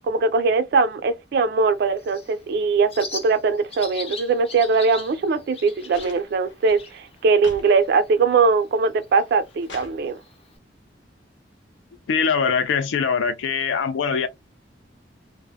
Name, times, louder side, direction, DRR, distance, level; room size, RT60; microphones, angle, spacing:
voice 1, 0.0-10.2, right 4 dB, 60° right, 0.3 m, -21 dB
Bird, 1.6-10.6, left 4 dB, 35° left, 0.7 m, -42 dB
sound 1, 5.9-7.7 8.1-8.6 9.1-10.0 11.2-11.3, left 2 dB, 70° left, 0.8 m, -43 dB
voice 2, 12.1-14.3, left 6 dB, 85° left, 0.3 m, -22 dB
2.2 x 2.0 x 3.3 m
head